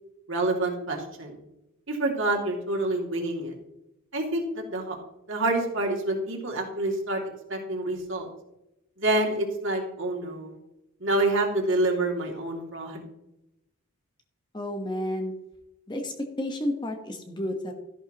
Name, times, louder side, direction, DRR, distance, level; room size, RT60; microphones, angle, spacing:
voice 1, 0.3-1.4 1.9-3.5 4.1-5.0 5.3-8.3 9.0-10.6 11.0-13.0, right 2 dB, 55° right, 0 dB, 2.5 m, -27 dB
voice 2, 14.5-15.3 15.9-17.7, left 1 dB, 20° left, 4 dB, 1.1 m, -31 dB
13.5 x 11.0 x 3.0 m, 0.90 s
head